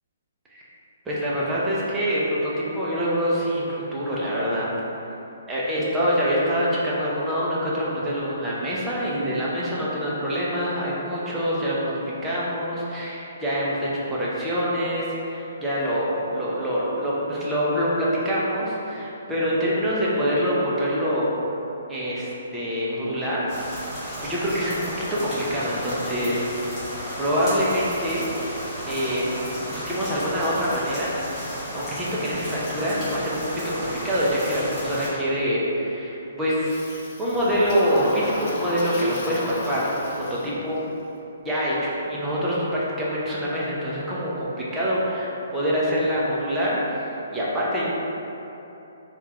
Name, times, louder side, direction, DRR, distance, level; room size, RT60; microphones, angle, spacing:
voice 1, 1.1-4.7 5.5-21.3 21.9-23.4 24.2-26.5 27.2-28.3 28.9-29.3 29.7-31.1 31.5-33.4 33.7-36.8 37.2-40.8 41.4-47.8, equal, 10° right, -8 dB, 0.6 m, -25 dB
sound 1, 23.5-35.1, equal, 15° left, 1.4 m, -34 dB
Toilet flush, 27.6-29.9 36.6-40.8, left 1 dB, 40° left, 0.5 m, -37 dB
3.5 x 2.4 x 2.8 m, 3.0 s
hypercardioid pair, 155°, 0 cm